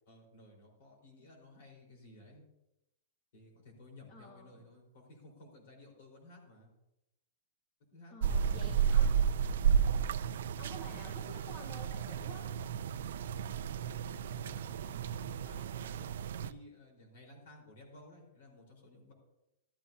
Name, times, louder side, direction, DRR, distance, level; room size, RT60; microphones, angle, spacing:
voice 1, 0.1-2.4 3.3-6.7 7.9-9.1 13.7-16.1 16.4-19.1, left 1 dB, 50° left, 1 dB, 4.2 m, -56 dB
voice 2, 4.1-4.6 8.1-9.1 10.6-12.5, left 1 dB, 20° left, -1 dB, 1.3 m, -51 dB
sound 1, 8.2-16.5, right 7 dB, 60° right, 0.5 m, -32 dB
14.0 x 12.5 x 2.8 m, 0.89 s
supercardioid pair, 180°, 0 cm